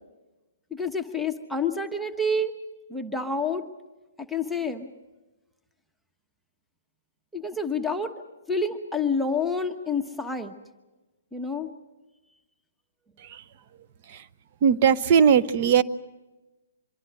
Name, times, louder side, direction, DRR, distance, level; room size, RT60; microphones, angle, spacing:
voice 1, 0.7-2.5 2.9-3.7 4.2-4.9 7.3-8.1 8.5-10.5 11.3-11.7, left 3 dB, ahead, 2 dB, 1.1 m, -28 dB
voice 2, 14.6-15.8, right 7 dB, 45° right, 12 dB, 0.9 m, -20 dB
25.0 x 23.0 x 6.4 m, 1.1 s
hypercardioid pair, 135°, 0 cm